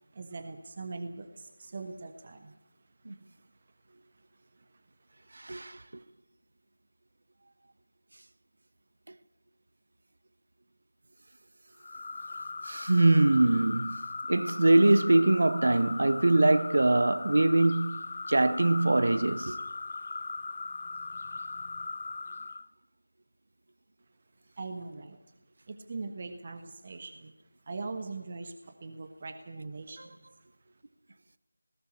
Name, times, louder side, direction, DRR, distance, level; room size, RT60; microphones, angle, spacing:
voice 1, 0.1-2.5 24.6-25.2 25.7-27.3 27.7-30.2, right 3 dB, 30° right, 1.4 m, -41 dB
voice 2, 5.3-5.8 12.7-14.0 14.3-19.6, right 2 dB, 50° right, 1.2 m, -23 dB
sound 1, 11.8-22.7, left 3 dB, 35° left, 0.8 m, -39 dB
19.0 x 18.5 x 8.7 m
figure-of-eight pair, 165°, 0 cm